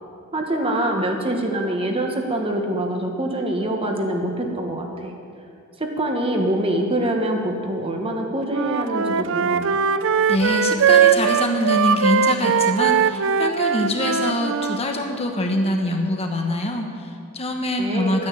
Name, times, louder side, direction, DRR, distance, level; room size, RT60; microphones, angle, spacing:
voice 1, 0.3-5.1 5.8-9.8 17.8-18.2, right 1 dB, 25° right, 2 dB, 1.4 m, -24 dB
Wind instrument woodwind instrument, 8.5-14.8, right 7 dB, 60° right, 0.5 m, -20 dB
voice 2, 10.3-18.3, left 1 dB, 30° left, 3 dB, 1.2 m, -24 dB
11.5 x 9.7 x 8.3 m, 2.5 s
head